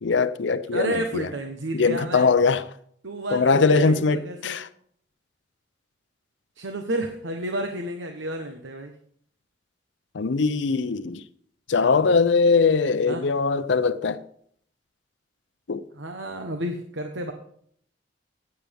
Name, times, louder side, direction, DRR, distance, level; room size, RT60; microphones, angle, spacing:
voice 1, 0.0-1.3 1.7-2.7 3.3-4.7 10.1-11.2 11.7-14.2 15.7-15.8, left 4 dB, 75° left, 0.6 m, -21 dB
voice 2, 0.7-2.3 3.0-4.6 6.6-8.9 11.8-12.0 13.1-13.2 15.9-17.3, right 1 dB, 80° right, 1.1 m, -31 dB
15.0 x 9.4 x 3.5 m
head